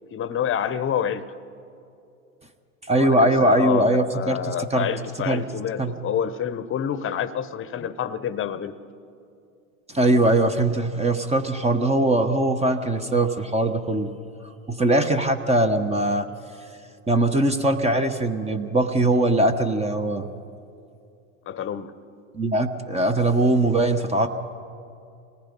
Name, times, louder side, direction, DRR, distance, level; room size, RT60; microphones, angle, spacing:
voice 1, 0.1-1.4 3.0-8.8 14.9-15.1 21.5-22.0, left 9 dB, 30° left, 15 dB, 1.0 m, -28 dB
voice 2, 2.9-4.9 5.2-5.4 5.8-5.9 9.9-14.1 14.7-16.3 17.1-20.3 22.3-24.3, right 1 dB, 15° right, 7 dB, 1.1 m, -21 dB
26.5 x 19.0 x 5.3 m, 2.5 s
hypercardioid pair, 90°, 43 cm